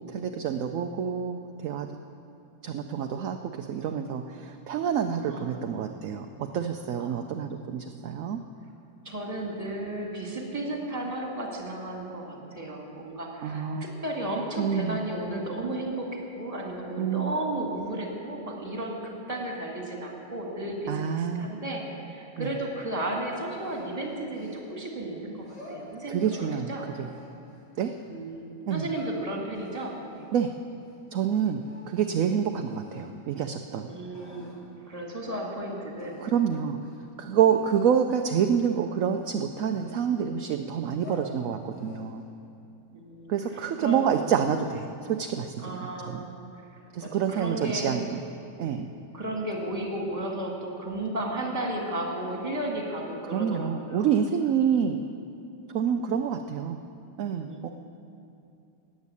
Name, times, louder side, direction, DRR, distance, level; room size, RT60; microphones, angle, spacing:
voice 1, 0.1-1.9 2.6-8.4 13.4-13.9 14.6-15.0 17.0-17.3 20.9-21.5 22.4-22.5 26.1-27.1 27.8-27.9 28.7-28.9 30.3-30.5 31.1-33.9 36.2-36.8 37.2-42.2 43.3-46.2 46.9-48.2 48.6-48.9 53.3-55.0 55.7-56.8 57.2-57.7, right 8 dB, 65° right, 6 dB, 0.9 m, -27 dB
voice 2, 5.3-5.6 7.0-7.1 9.0-25.4 25.7-26.9 28.1-30.3 31.7-31.8 33.9-34.5 34.9-36.2 42.9-44.1 45.6-46.3 47.0-48.1 49.1-54.1 57.5-57.7, right 1 dB, 20° right, -1 dB, 2.3 m, -34 dB
sound 1, 23.5-24.9 25.4-26.5 26.9-28.0 28.6-29.2 29.6-31.3 31.6-32.2 32.7-33.1 33.7-33.8 34.1-34.7 35.1-35.2 35.4-35.6 36.0-36.4 36.7-37.0 37.5-37.9 38.4-38.7 39.1-40.3 40.8-41.3 41.7-42.2, left 2 dB, 85° left, 4.7 m, -49 dB
14.0 x 8.3 x 9.7 m, 2.6 s
omnidirectional pair, 1.8 m